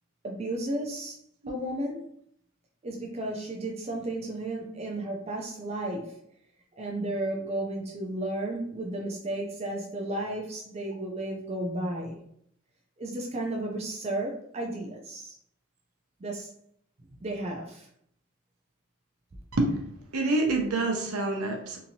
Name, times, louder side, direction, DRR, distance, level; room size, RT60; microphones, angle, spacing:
voice 1, 0.2-1.2 1.5-2.1 2.8-6.1 6.8-12.2 13.0-15.4 16.2-16.5 17.2-17.9, right 1 dB, 30° right, 0 dB, 0.3 m, -33 dB
voice 2, 20.1-21.8, right 2 dB, 80° right, 2 dB, 0.6 m, -26 dB
2.8 x 2.6 x 2.7 m, 0.70 s
head